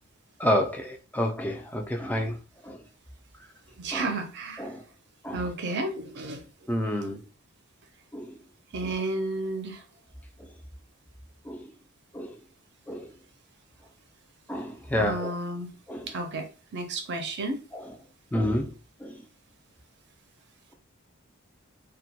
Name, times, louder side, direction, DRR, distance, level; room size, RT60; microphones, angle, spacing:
voice 1, 0.4-2.3 3.9-4.0 4.6-4.7 5.2-5.4 6.7-7.2 8.1-8.3 11.5-11.6 12.2-12.3 12.9-13.0 14.5-15.3 15.9-16.0 18.3-18.7 19.0-19.1, equal, 5° left, 0.3 m, -28 dB
voice 2, 3.8-4.7 5.3-6.4 8.7-9.8 15.0-15.7 16.1-17.6, right 2 dB, 55° right, 0.5 m, -32 dB
2.2 x 2.1 x 2.7 m
head